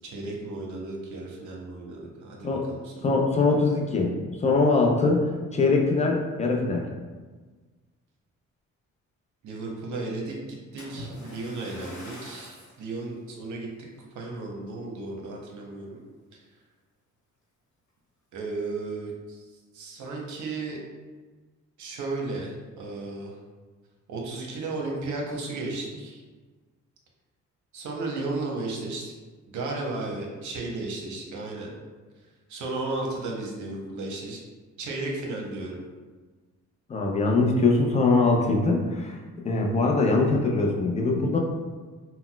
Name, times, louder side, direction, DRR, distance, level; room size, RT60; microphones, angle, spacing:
voice 1, 0.0-2.9 9.4-13.7 14.1-16.0 16.3-16.4 18.3-19.4 19.7-20.8 21.8-23.3 24.1-26.2 27.7-29.1 29.5-31.7 32.5-34.4 34.8-35.8, right 2 dB, 75° right, -1 dB, 0.8 m, -34 dB
voice 2, 3.0-4.1 4.4-5.2 5.5-6.8 36.9-39.2 39.4-41.4, left 3 dB, 25° left, 0 dB, 0.5 m, -22 dB
Splash splatter, 10.8-12.8 13.5-13.7 14.3-14.4, equal, 85° left, 1.3 m, -43 dB
4.0 x 2.1 x 2.2 m, 1.3 s
cardioid pair, 90°, 30 cm